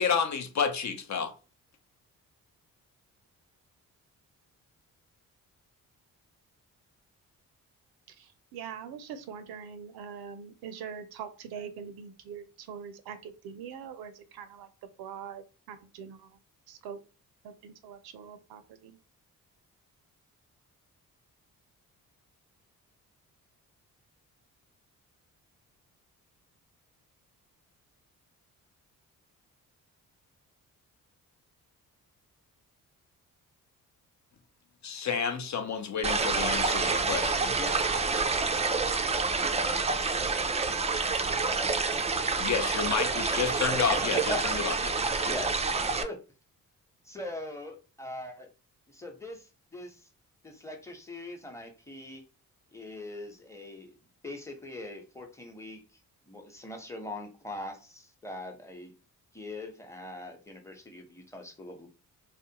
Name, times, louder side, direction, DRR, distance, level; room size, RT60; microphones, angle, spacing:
voice 1, 0.0-1.3 34.8-37.6 42.4-44.2 44.4-44.9, left 6 dB, 50° left, 0.7 m, -30 dB
voice 2, 8.1-14.7 15.0-16.3 16.7-17.0 17.4-19.0, right 7 dB, 85° right, 0.5 m, -43 dB
sound 1, 36.0-46.0, right 4 dB, 20° right, 0.3 m, -28 dB
voice 3, 37.6-40.7 41.3-41.7 42.0-42.7 43.1-43.8 44.1-44.4 45.2-46.2 47.1-48.5 48.9-50.1 50.4-52.2 52.7-54.0 54.2-55.8 56.2-58.9 59.3-61.9, left 1 dB, 10° left, 0.9 m, -42 dB
2.4 x 2.2 x 2.8 m
supercardioid pair, 55°, 36 cm